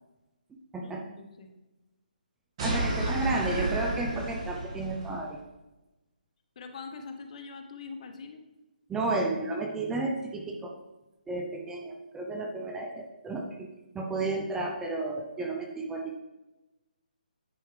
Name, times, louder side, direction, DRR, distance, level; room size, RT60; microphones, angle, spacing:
voice 1, 0.8-1.5 2.7-3.4 6.6-8.4, left 4 dB, 45° left, 6 dB, 0.9 m, -44 dB
voice 2, 2.6-5.4 8.9-10.7 11.3-13.7 13.9-16.2, right 2 dB, 10° right, 1 dB, 0.6 m, -32 dB
sound 1, 2.6-5.2, right 2 dB, 40° right, 1.8 m, -31 dB
9.7 x 4.6 x 3.3 m, 1.0 s
hypercardioid pair, 150°, 5 cm